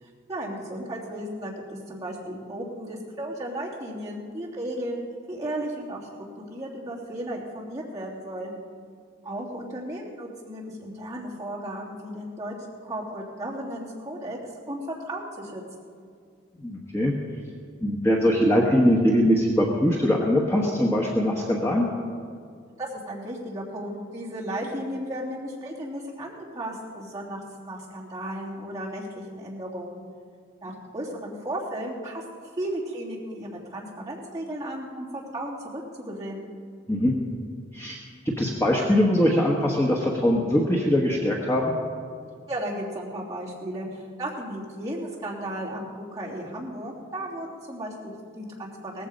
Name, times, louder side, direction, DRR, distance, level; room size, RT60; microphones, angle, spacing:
voice 1, 0.0-6.1 6.4-8.5 9.2-14.4 14.7-15.9 22.8-30.0 30.6-32.2 32.6-36.5 42.5-49.1, right 1 dB, 15° right, -6 dB, 3.1 m, -35 dB
voice 2, 16.6-17.1 17.8-21.9 36.9-37.1 37.7-38.0 38.2-41.7, equal, 15° left, -2 dB, 1.2 m, -22 dB
18.0 x 15.0 x 5.2 m, 2.2 s
head